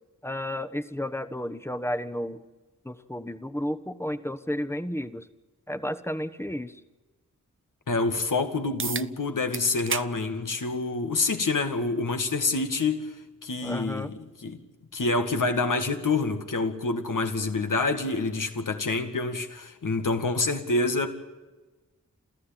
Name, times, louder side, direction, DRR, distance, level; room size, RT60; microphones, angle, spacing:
voice 1, 0.2-2.4 2.8-5.3 5.7-6.8 13.6-14.1, left 1 dB, 10° left, 1.2 m, -32 dB
voice 2, 7.9-13.1 13.4-14.6 14.9-21.1, left 3 dB, 75° left, 2.3 m, -27 dB
sound 1, 8.8-9.1 9.5-10.1 10.5-10.7 11.7-11.8 16.7-16.8, right 5 dB, 40° right, 0.7 m, -31 dB
27.5 x 14.5 x 9.1 m
wide cardioid pair, 65°, 32 cm